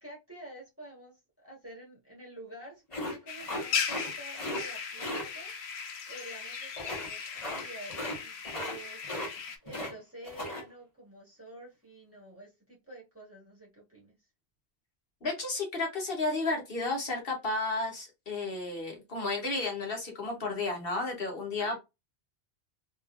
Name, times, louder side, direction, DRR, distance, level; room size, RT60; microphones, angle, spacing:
voice 1, 0.0-5.5 6.1-9.0 9.6-14.1 21.6-21.8, right 1 dB, 15° right, 1.7 m, -49 dB
sound 1, 2.9-4.1 4.3-4.6 5.0-5.2 6.8-7.1 7.4-7.6 7.9-8.2 8.4-8.8 9.0-9.9 10.2-10.6, left 1 dB, 30° left, 1.4 m, -36 dB
sound 2, 3.3-9.6, left 6 dB, 80° left, 0.9 m, -37 dB
voice 2, 15.2-21.8, left 3 dB, 60° left, 1.1 m, -32 dB
3.1 x 2.8 x 2.4 m
omnidirectional pair, 1.1 m